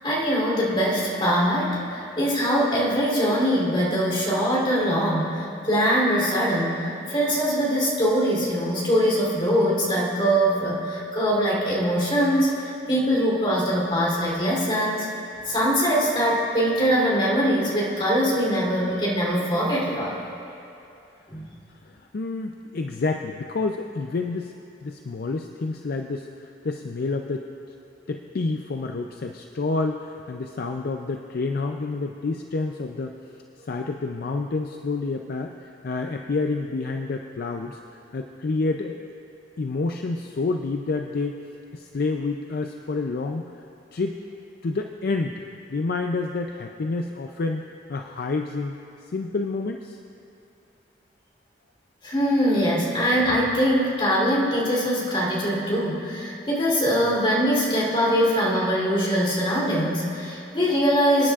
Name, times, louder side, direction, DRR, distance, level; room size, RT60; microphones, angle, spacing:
voice 1, 0.0-15.1 15.4-20.2 21.3-21.4 52.0-61.3, equal, 30° left, -4 dB, 3.2 m, -22 dB
voice 2, 21.9-24.5 24.8-27.4 28.1-33.3 33.7-39.0 39.6-41.4 41.7-43.4 43.9-44.2 44.6-45.4 45.7-48.7 49.1-50.0, left 3 dB, 55° left, 4 dB, 0.4 m, -28 dB
24.5 x 9.9 x 2.4 m, 2.7 s
head